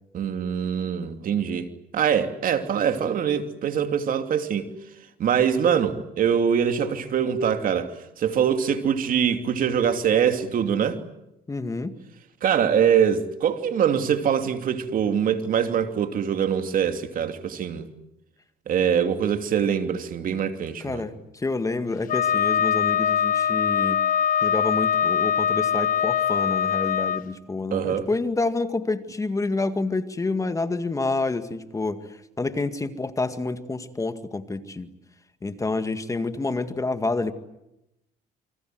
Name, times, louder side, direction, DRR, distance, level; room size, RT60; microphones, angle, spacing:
voice 1, 0.1-4.7 5.2-11.0 12.4-17.9 18.7-21.1 27.7-28.1, right 8 dB, 55° right, 2.9 m, -23 dB
voice 2, 11.5-12.0 20.8-24.0 24.4-32.0 32.4-34.9 35.4-37.3, left 3 dB, 20° left, 2.0 m, -28 dB
Wind instrument woodwind instrument, 22.1-27.2, left 8 dB, 55° left, 1.0 m, -22 dB
29.0 x 25.0 x 7.8 m
cardioid pair, 110°, 17 cm